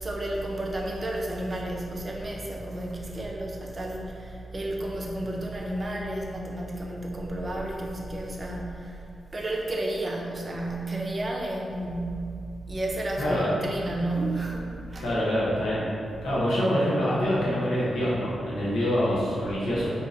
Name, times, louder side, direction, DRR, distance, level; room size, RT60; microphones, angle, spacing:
voice 1, 0.0-9.0 9.3-12.3 12.7-15.1, right 1 dB, 40° right, -1 dB, 0.6 m, -32 dB
voice 2, 13.2-13.5 15.0-15.8 16.2-19.9, equal, 85° left, -8 dB, 0.9 m, -25 dB
2.9 x 2.5 x 3.9 m, 2.4 s
cardioid pair, 55°, 0 cm